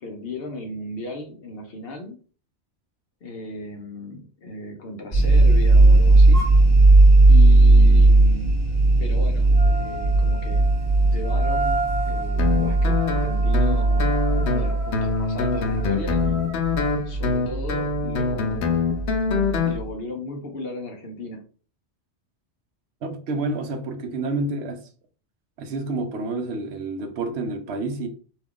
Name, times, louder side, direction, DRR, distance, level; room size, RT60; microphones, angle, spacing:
voice 1, 0.0-2.2 3.2-6.4 7.3-8.6 9.0-10.7 11.0-16.4 17.1-18.8 19.6-21.4, left 2 dB, 60° left, 0.9 m, -36 dB
sound 1, 5.1-19.8, right 2 dB, 15° left, 1.3 m, -17 dB
sound 2, 6.3-6.6 9.5-16.9, right 2 dB, 20° right, 0.9 m, -33 dB
Guitar, 12.4-19.8, left 4 dB, 85° left, 1.0 m, -25 dB
voice 2, 23.0-24.8 25.6-28.1, right 2 dB, 70° right, 0.8 m, -29 dB
2.7 x 2.3 x 3.6 m
omnidirectional pair, 1.2 m